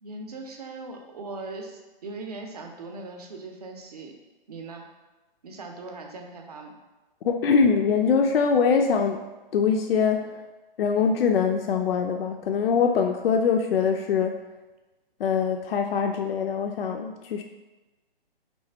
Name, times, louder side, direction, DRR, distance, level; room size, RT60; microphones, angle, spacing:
voice 1, 0.0-4.1 4.5-4.9 5.4-6.8, right 3 dB, 40° right, 3 dB, 0.6 m, -39 dB
voice 2, 7.2-9.3 9.5-10.4 10.8-14.4 15.2-17.4, left 6 dB, 75° left, 4 dB, 0.4 m, -23 dB
3.3 x 3.0 x 4.3 m, 1.1 s
hypercardioid pair, 170°, 29 cm